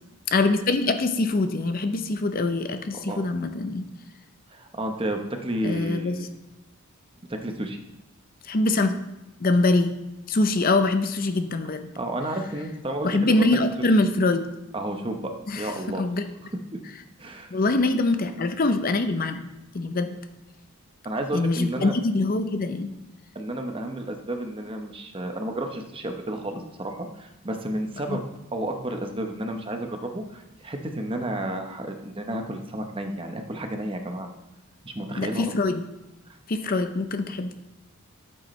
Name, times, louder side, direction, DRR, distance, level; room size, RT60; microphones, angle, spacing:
voice 1, 0.3-3.9 5.6-6.2 8.4-8.9 9.4-9.9 10.3-11.9 13.0-14.5 15.5-15.7 16.0-16.2 17.5-19.5 19.7-20.2 21.3-22.9 28.1-28.2 35.2-35.8 36.5-37.5, left 2 dB, 40° left, 8 dB, 0.6 m, -23 dB
voice 2, 4.5-6.2 7.3-7.8 12.0-13.4 13.8-13.9 14.7-16.0 16.4-16.5 17.2-17.6 21.0-21.9 23.3-28.2 28.5-34.3 34.8-35.5 36.3-36.4, right 1 dB, 25° right, 4 dB, 0.8 m, -31 dB
13.0 x 7.7 x 3.2 m, 1.0 s
head